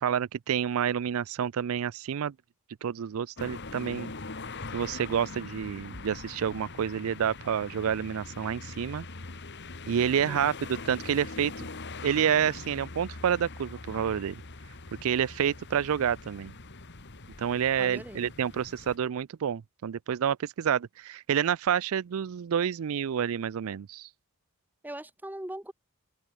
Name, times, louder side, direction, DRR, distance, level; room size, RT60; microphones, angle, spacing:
voice 1, 0.0-2.3 2.8-4.1 4.7-9.0 9.9-11.7 12.0-14.4 15.0-16.5 17.4-24.1, right 8 dB, 65° right, 0.4 m, -29 dB
sound 1, 3.4-19.0, left 3 dB, 55° left, 2.1 m, -42 dB
voice 2, 17.8-18.3 24.8-25.7, right 1 dB, 10° right, 1.2 m, -40 dB
open air
head